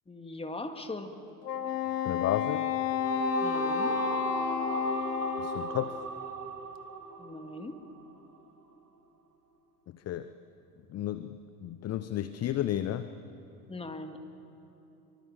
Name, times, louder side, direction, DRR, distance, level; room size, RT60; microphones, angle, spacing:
voice 1, 0.1-1.2 3.4-4.0 7.2-7.8 13.7-14.2, left 2 dB, 10° left, 6 dB, 2.0 m, -40 dB
Wind instrument woodwind instrument, 1.4-6.0, left 8 dB, 80° left, 1.2 m, -31 dB
voice 2, 2.0-2.7 5.4-6.0 10.1-10.3 10.9-13.1, left 12 dB, 30° left, 12 dB, 0.8 m, -32 dB
sound 1, 2.7-8.1, right 5 dB, 85° right, 1.6 m, -37 dB
24.5 x 24.0 x 7.6 m, 2.9 s
figure-of-eight pair, 65°, 47 cm